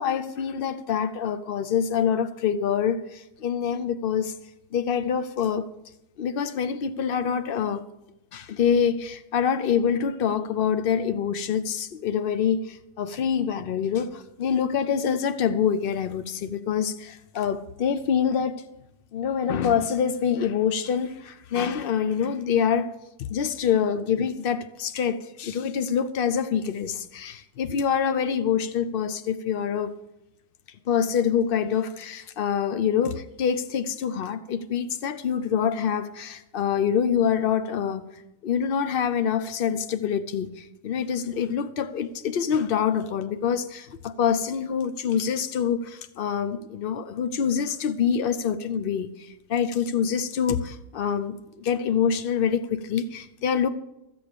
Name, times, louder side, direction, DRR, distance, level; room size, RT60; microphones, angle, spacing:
voice 1, 0.0-4.3 4.7-5.7 6.2-7.8 8.3-18.6 19.1-22.9 23.3-30.0 30.9-38.0 38.4-53.7, left 7 dB, 80° left, 0.5 m, -26 dB
14.5 x 7.6 x 6.8 m
omnidirectional pair, 1.7 m